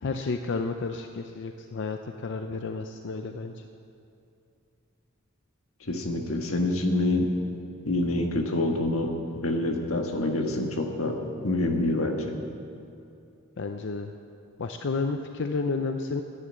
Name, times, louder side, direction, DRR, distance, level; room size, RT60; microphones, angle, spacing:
voice 1, 0.0-3.6 13.6-14.1 14.6-16.2, left 4 dB, 60° left, 6 dB, 0.5 m, -31 dB
voice 2, 5.8-7.3 7.8-9.1 9.4-11.2 11.4-12.2, left 2 dB, 90° left, 3 dB, 1.5 m, -26 dB
10.5 x 10.0 x 7.9 m, 2.6 s
head